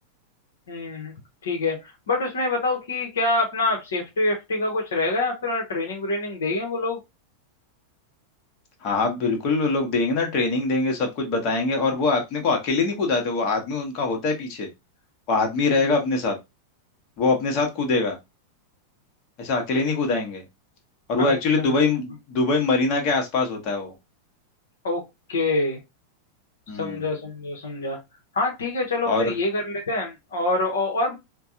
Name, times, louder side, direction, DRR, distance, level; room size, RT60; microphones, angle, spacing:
voice 1, 0.7-1.1 1.4-7.0 15.6-15.8 21.2-21.6 24.8-25.0 25.3-25.8 26.8-28.0 28.3-31.1, left 2 dB, 65° left, 1 dB, 1.0 m, -26 dB
voice 2, 8.8-14.7 15.3-16.4 17.2-18.2 19.4-20.4 21.1-23.9 26.7-27.1 29.1-29.3, left 3 dB, 40° left, 2 dB, 1.1 m, -23 dB
4.5 x 2.2 x 2.7 m, 0.22 s
figure-of-eight pair, 90°, 0 cm